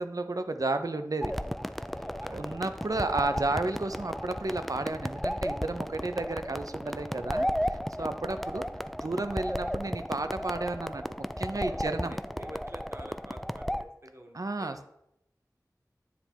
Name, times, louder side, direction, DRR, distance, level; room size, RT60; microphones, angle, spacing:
voice 1, 0.0-1.3 2.3-8.6 9.0-12.1 14.3-14.9, right 2 dB, 60° right, 9 dB, 0.6 m, -32 dB
sound 1, 1.2-13.8, equal, ahead, 0.3 m, -34 dB
voice 2, 2.0-2.6 8.0-8.1 11.6-14.8, equal, 40° right, 4 dB, 1.1 m, -49 dB
9.4 x 3.4 x 4.4 m, 0.79 s
wide cardioid pair, 50°, 7 cm